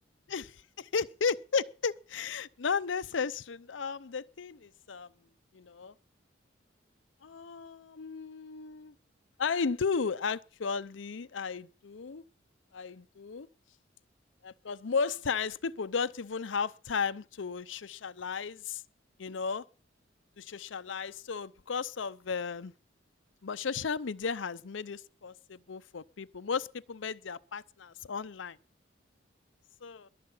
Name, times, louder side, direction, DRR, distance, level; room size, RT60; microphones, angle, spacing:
voice 1, 0.3-5.1 5.5-5.9 7.2-8.9 9.4-12.2 12.7-13.5 14.4-18.8 19.2-19.6 20.4-22.7 23.4-28.6 29.8-30.1, left 5 dB, 85° left, 0.6 m, -34 dB
22.0 x 7.7 x 5.5 m
head